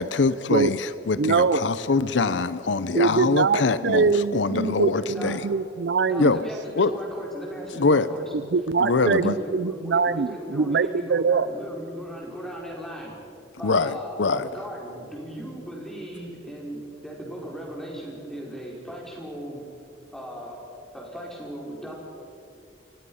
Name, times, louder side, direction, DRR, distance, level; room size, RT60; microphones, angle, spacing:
voice 1, 0.0-5.4 6.2-6.4 6.8-6.9 7.8-8.1 8.8-9.3 13.6-14.5, left 4 dB, 80° left, 0.7 m, -23 dB
voice 2, 1.2-1.6 2.9-6.2 8.3-11.5, right 5 dB, 65° right, 0.5 m, -23 dB
voice 3, 4.9-5.4 6.1-8.4 9.0-13.1 13.6-19.6 20.1-20.6 20.9-21.9, equal, ahead, 5.0 m, -37 dB
29.5 x 16.0 x 5.7 m
head